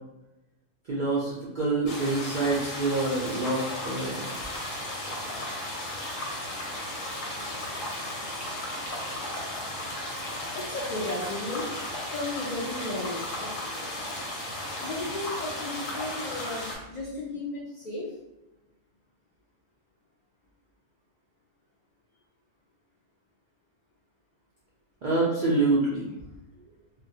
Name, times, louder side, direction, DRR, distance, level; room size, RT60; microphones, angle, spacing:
voice 1, 0.9-4.3 25.0-26.0, right 3 dB, 65° right, -6 dB, 0.5 m, -26 dB
sound 1, 1.9-16.8, left 1 dB, 90° left, 1.0 m, -35 dB
voice 2, 10.5-14.1 14.8-18.1, left 2 dB, 65° left, -6 dB, 0.4 m, -35 dB
2.2 x 2.1 x 2.6 m, 0.96 s
omnidirectional pair, 1.3 m